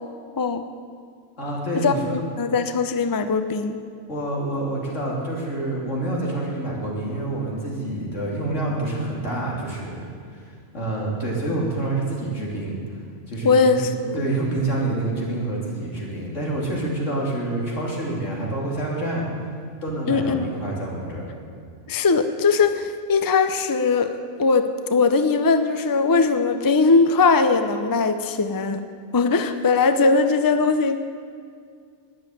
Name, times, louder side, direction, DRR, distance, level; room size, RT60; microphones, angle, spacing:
voice 1, 1.4-2.2 4.1-10.1 10.7-13.0 13.3-13.8 14.1-19.3 19.8-21.3, right 2 dB, 85° left, -3 dB, 3.5 m, -27 dB
voice 2, 2.4-3.8 13.4-14.2 20.1-20.5 21.9-28.9 29.1-31.0, left 4 dB, 25° left, 9 dB, 0.5 m, -20 dB
12.5 x 9.8 x 9.2 m, 2.2 s
omnidirectional pair, 1.2 m